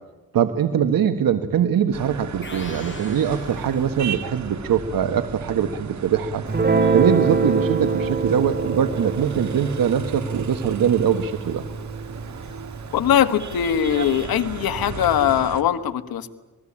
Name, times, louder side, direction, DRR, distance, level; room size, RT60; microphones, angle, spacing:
voice 1, 0.3-6.4 6.9-11.6, right 8 dB, 75° right, 8 dB, 1.6 m, -22 dB
sound 1, 1.9-15.6, right 6 dB, 50° right, 2.2 m, -35 dB
sound 2, 2.4-4.3, left 3 dB, 35° left, 6.8 m, -41 dB
Guitar, 6.5-13.1, right 4 dB, 30° right, 2.8 m, -25 dB
voice 2, 12.9-16.3, left 9 dB, 85° left, 11 dB, 1.7 m, -21 dB
27.0 x 20.5 x 8.7 m, 1.2 s
cardioid pair, 105°, 35 cm